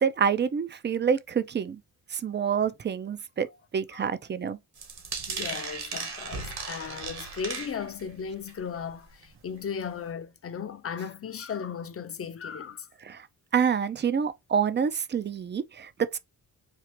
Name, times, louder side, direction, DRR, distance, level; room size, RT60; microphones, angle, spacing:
voice 1, 0.0-1.8 2.1-3.5 3.7-4.6 13.0-13.3 13.5-16.2, right 7 dB, 25° right, 0.4 m, -27 dB
sound 1, 4.8-8.1 8.5-8.8 9.2-9.3 9.6-9.7, right 5 dB, 65° right, 1.5 m, -36 dB
voice 2, 5.3-12.9, left 7 dB, 35° left, 0.6 m, -36 dB
4.4 x 2.4 x 2.9 m
cardioid pair, 80°, 42 cm